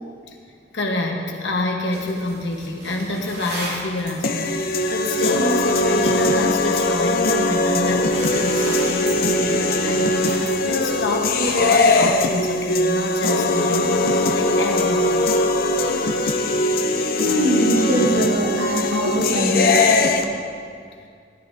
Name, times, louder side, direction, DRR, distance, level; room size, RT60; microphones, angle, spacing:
voice 1, 0.7-15.3, left 2 dB, 75° left, 1 dB, 1.3 m, -27 dB
sound 1, 1.9-11.8, right 1 dB, 60° right, 2.5 m, -37 dB
sound 2, 4.2-20.2, left 2 dB, 55° left, 0.6 m, -20 dB
voice 2, 17.2-19.9, equal, 85° right, -2 dB, 2.0 m, -21 dB
14.5 x 11.5 x 2.8 m, 2.2 s
head